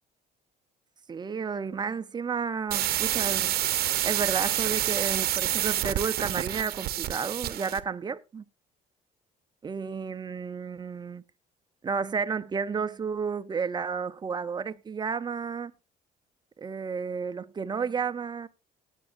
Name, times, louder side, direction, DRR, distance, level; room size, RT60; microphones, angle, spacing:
voice 1, 1.1-3.6 4.0-8.4 9.6-11.2 11.8-15.7 16.6-18.5, right 5 dB, 25° right, 0.6 m, -32 dB
sound 1, 2.7-7.8, right 13 dB, 65° right, 0.8 m, -28 dB
19.5 x 8.2 x 2.6 m
cardioid pair, 110°, 17 cm